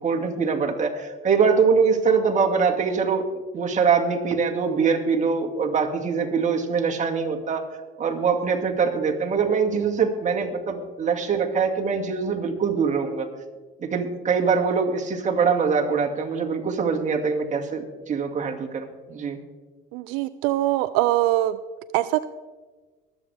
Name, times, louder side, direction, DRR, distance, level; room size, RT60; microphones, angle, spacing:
voice 1, 0.0-3.2 3.5-7.7 8.0-13.3 13.8-19.4, right 5 dB, 35° right, 2 dB, 2.0 m, -23 dB
voice 2, 19.9-21.6 21.9-22.2, right 15 dB, 85° right, 14 dB, 0.4 m, -22 dB
23.5 x 8.1 x 3.4 m, 1.3 s
supercardioid pair, 90°, 21 cm